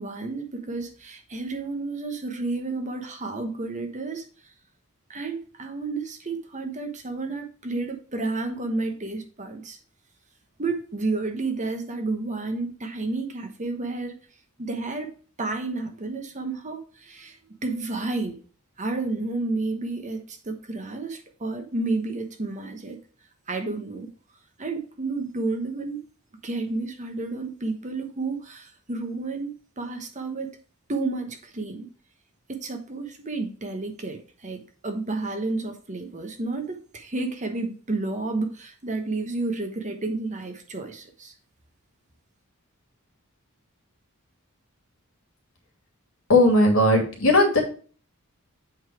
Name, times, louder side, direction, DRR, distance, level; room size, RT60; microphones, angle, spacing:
voice 1, 0.0-4.5 5.1-9.8 10.6-14.1 14.6-15.1 15.4-18.4 18.8-23.0 23.5-24.1 24.6-26.0 26.4-30.5 30.9-31.9 32.5-41.3, right 3 dB, 35° right, 5 dB, 1.1 m, -31 dB
voice 2, 46.3-47.6, left 1 dB, 70° left, 2 dB, 2.5 m, -17 dB
7.8 x 4.0 x 4.7 m, 0.40 s
head